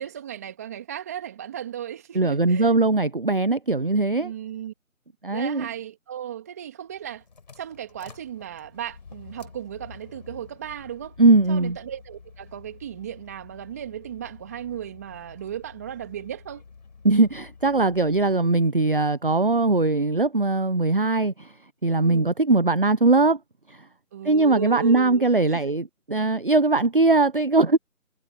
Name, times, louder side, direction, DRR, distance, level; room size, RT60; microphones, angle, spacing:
voice 1, 0.0-2.7 4.2-4.7 5.3-7.2 7.6-11.2 11.5-16.6 22.0-22.3 24.1-25.8, right 10 dB, 10° right, 2.8 m, -36 dB
voice 2, 2.1-4.3 5.2-5.7 11.2-11.8 17.0-21.5 21.8-23.4 23.7-23.8 24.2-27.8, right 3 dB, 40° right, 0.9 m, -20 dB
sound 1, 6.9-18.4, left 5 dB, 30° left, 4.9 m, -49 dB
figure-of-eight pair, 170°, 42 cm